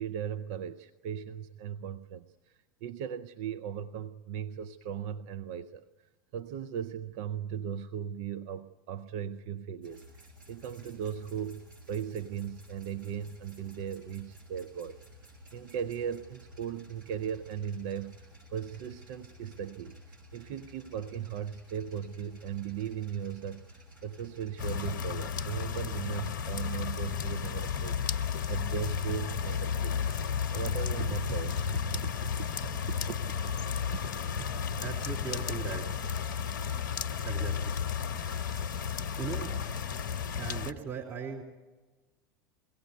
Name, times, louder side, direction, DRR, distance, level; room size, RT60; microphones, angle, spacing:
voice 1, 0.0-15.0 15.5-30.0 30.5-32.0 32.9-33.2 34.4-34.6, right 8 dB, 55° right, 10 dB, 0.7 m, -38 dB
sound 1, 9.8-25.1, equal, 80° right, 6.7 m, -53 dB
sound 2, 24.6-40.7, left 7 dB, 65° left, 0.9 m, -33 dB
voice 2, 34.8-35.9 37.2-37.7 39.2-39.5 40.4-41.4, right 7 dB, 30° right, 0 dB, 4.0 m, -38 dB
23.0 x 17.0 x 9.4 m, 1.2 s
figure-of-eight pair, 80°, 11 cm